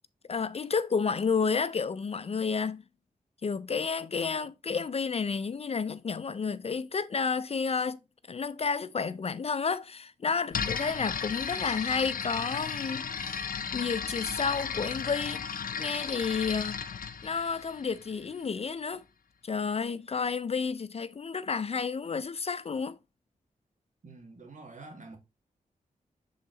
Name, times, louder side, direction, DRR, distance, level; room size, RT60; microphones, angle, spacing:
voice 1, 0.3-2.8 3.4-8.0 8.3-13.4 13.7-15.5 15.8-16.8 17.2-19.0 19.4-23.0, left 5 dB, 45° left, 0.4 m, -31 dB
sound 1, 10.5-18.3, left 6 dB, 75° left, 0.7 m, -35 dB
voice 2, 24.0-25.2, right 3 dB, 60° right, 1.9 m, -47 dB
6.6 x 3.8 x 3.8 m
cardioid pair, 60°, 15 cm